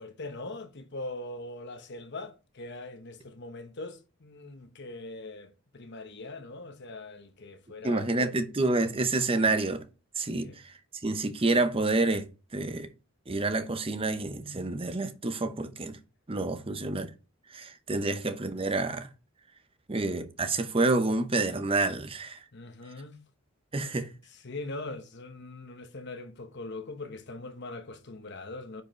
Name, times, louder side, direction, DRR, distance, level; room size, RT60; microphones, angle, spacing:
voice 1, 0.0-8.1 10.3-10.6 18.0-18.2 22.5-23.2 24.3-28.8, left 2 dB, 50° left, 1.0 m, -41 dB
voice 2, 7.8-9.9 10.2-10.7 11.0-12.9 13.3-16.0 16.3-17.1 17.5-19.1 19.9-22.4 23.7-24.1, right 2 dB, 25° right, 0.7 m, -28 dB
9.4 x 4.8 x 3.2 m
head